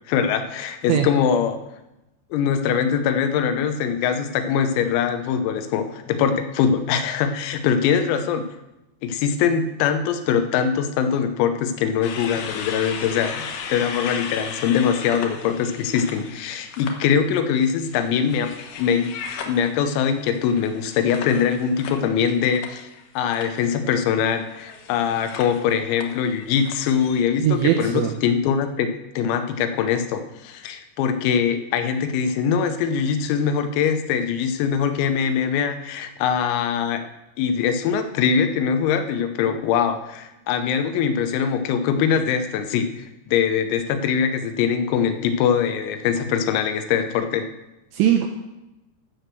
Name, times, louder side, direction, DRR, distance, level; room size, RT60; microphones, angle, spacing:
voice 1, 0.1-1.6 2.3-8.4 9.0-18.5 18.8-19.1 19.5-22.9 23.2-28.9 29.2-37.1 37.4-47.5, left 7 dB, 85° left, 8 dB, 3.7 m, -22 dB
sound 1, 12.0-16.9 17.3-23.0 23.3-23.6 24.5-27.2, left 6 dB, 70° left, 2.5 m, -36 dB
voice 2, 27.4-28.1 47.9-48.3, right 10 dB, 80° right, 3 dB, 2.6 m, -20 dB
14.5 x 6.2 x 6.7 m, 0.95 s
omnidirectional pair, 6.0 m